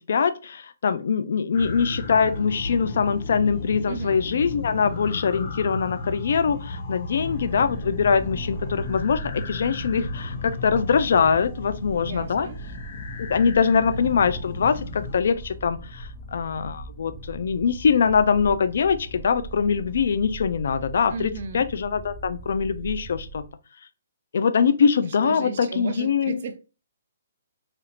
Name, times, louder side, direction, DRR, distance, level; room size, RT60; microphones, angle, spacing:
voice 1, 0.1-12.5 13.2-23.4 24.3-26.4, left 6 dB, 65° left, 0.4 m, -23 dB
sound 1, 1.5-15.2, left 2 dB, 45° left, 0.7 m, -34 dB
sound 2, 7.2-23.5, right 2 dB, ahead, 0.5 m, -40 dB
voice 2, 12.0-12.6 21.1-21.6 25.2-26.6, right 5 dB, 55° right, 0.5 m, -34 dB
4.2 x 2.4 x 2.8 m
hypercardioid pair, 160°, 0 cm